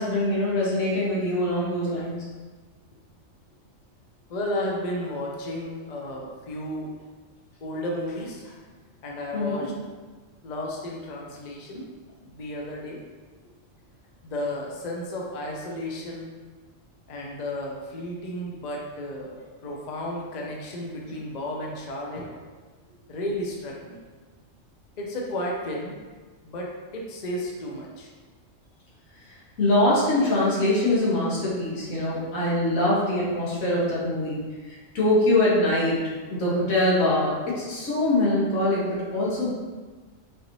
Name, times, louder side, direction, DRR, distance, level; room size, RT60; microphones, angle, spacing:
voice 1, 0.0-2.2 9.3-9.6 29.3-34.4 34.6-36.0 36.3-38.8 39.1-39.5, left 1 dB, 85° left, -6 dB, 1.5 m, -23 dB
voice 2, 4.3-6.9 7.6-8.6 9.0-9.7 10.4-11.9 12.2-13.0 14.2-16.3 17.1-22.4 23.1-24.0 25.0-25.9 26.4-28.1, left 1 dB, 55° left, -2 dB, 0.4 m, -33 dB
4.6 x 2.6 x 3.0 m, 1.4 s
omnidirectional pair, 1.4 m